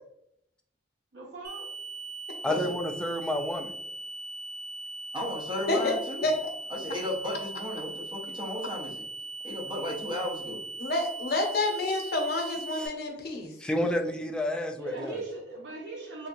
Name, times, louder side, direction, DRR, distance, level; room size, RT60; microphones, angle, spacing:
voice 1, 1.1-1.7 14.7-16.3, right 3 dB, 90° right, -2 dB, 1.0 m, -39 dB
sound 1, 1.4-12.9, right 2 dB, 65° right, 0.7 m, -40 dB
voice 2, 2.4-3.7 12.8-12.9 13.6-15.2, left 1 dB, 5° left, 3 dB, 0.3 m, -30 dB
voice 3, 5.1-6.3 6.7-9.0 9.4-10.6 13.8-13.9, left 1 dB, 25° right, -3 dB, 0.7 m, -34 dB
voice 4, 10.8-13.5, left 2 dB, 60° left, 2 dB, 0.7 m, -29 dB
3.3 x 2.9 x 2.6 m, 0.75 s
head